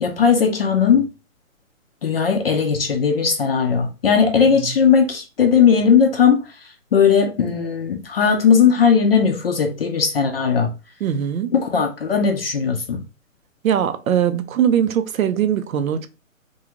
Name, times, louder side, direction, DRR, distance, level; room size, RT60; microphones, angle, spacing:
voice 1, 0.0-1.1 2.0-6.4 6.9-10.7 11.5-13.0, left 6 dB, 45° left, 0.4 m, -17 dB
voice 2, 11.0-11.5 13.6-16.1, right 9 dB, 80° right, 0.6 m, -21 dB
2.6 x 2.3 x 2.9 m
hypercardioid pair, 145°, 41 cm